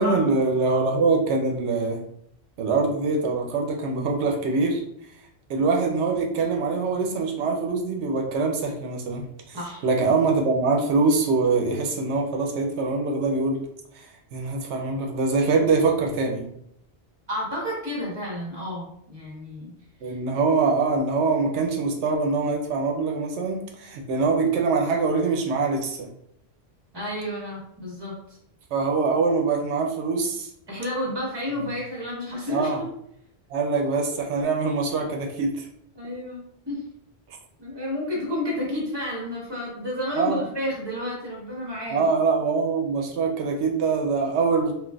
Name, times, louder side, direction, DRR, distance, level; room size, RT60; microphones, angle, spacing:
voice 1, 0.0-2.0 2.6-4.8 5.5-9.6 9.8-13.7 13.9-16.4 20.0-26.1 28.7-30.5 32.5-32.8 33.5-35.7 40.2-40.4 41.9-44.7, right 4 dB, 85° right, 2 dB, 0.9 m, -24 dB
voice 2, 9.5-9.8 17.3-19.7 20.0-20.1 26.9-28.4 30.7-32.9 35.9-36.8 37.6-42.1, left 1 dB, 25° right, -4 dB, 1.1 m, -31 dB
3.8 x 2.4 x 2.3 m, 0.72 s
omnidirectional pair, 1.1 m